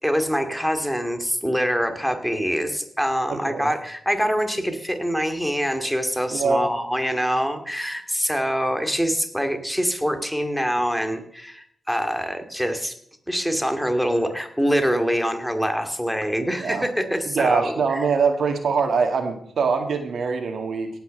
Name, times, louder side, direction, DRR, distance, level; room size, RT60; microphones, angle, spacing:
voice 1, 0.0-12.9 13.3-18.0, equal, ahead, 6 dB, 2.3 m, -24 dB
voice 2, 3.3-3.7 6.3-6.6 16.5-16.8 17.3-20.9, right 5 dB, 70° right, 5 dB, 2.3 m, -23 dB
17.5 x 5.9 x 6.5 m, 0.68 s
cardioid pair, 60°, 0 cm